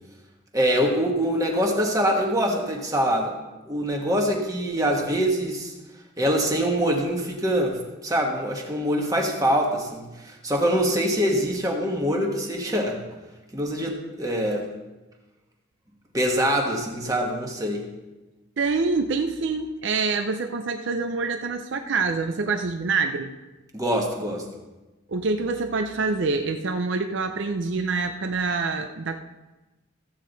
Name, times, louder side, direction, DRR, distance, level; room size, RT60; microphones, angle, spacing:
voice 1, 0.5-3.3 3.6-5.7 6.2-13.0 13.5-14.7 16.1-17.9 23.7-24.5, equal, 15° right, 0 dB, 1.2 m, -24 dB
voice 2, 18.6-23.4 25.1-29.2, right 4 dB, 65° right, 6 dB, 0.5 m, -26 dB
14.5 x 8.4 x 4.0 m, 1.1 s
head